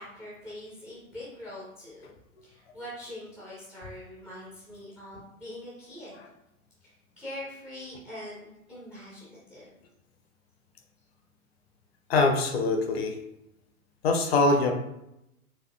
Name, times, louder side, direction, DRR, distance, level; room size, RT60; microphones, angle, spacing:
voice 1, 0.0-2.1 2.4-6.2 6.8-9.8, left 1 dB, ahead, -8 dB, 0.4 m, -43 dB
voice 2, 12.1-13.2 14.0-14.7, left 3 dB, 45° left, 4 dB, 0.5 m, -23 dB
4.0 x 2.5 x 2.5 m, 0.86 s
figure-of-eight pair, 105°, 43 cm